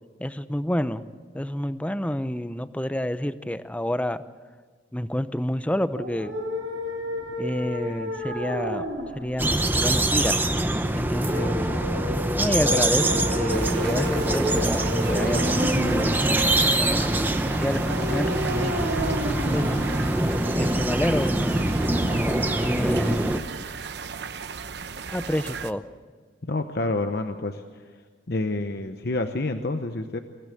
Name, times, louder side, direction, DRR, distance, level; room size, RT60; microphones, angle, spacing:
voice 1, 0.2-1.0 1.3-4.2 4.9-6.3 7.4-8.9 9.1-10.4 10.6-11.7 12.3-18.9 19.5-19.9 20.6-21.7 22.1-23.3 25.1-25.8, left 1 dB, 5° left, 13 dB, 0.6 m, -29 dB
sound 1, 5.9-20.9, equal, 80° right, 4.6 m, -32 dB
sound 2, 9.4-23.4, right 1 dB, 10° right, 1.0 m, -24 dB
sound 3, 13.5-25.7, right 5 dB, 60° right, 0.8 m, -36 dB
voice 2, 26.4-28.0 28.3-30.2, left 2 dB, 55° left, 7 dB, 0.9 m, -28 dB
23.5 x 15.5 x 8.5 m, 1.5 s
head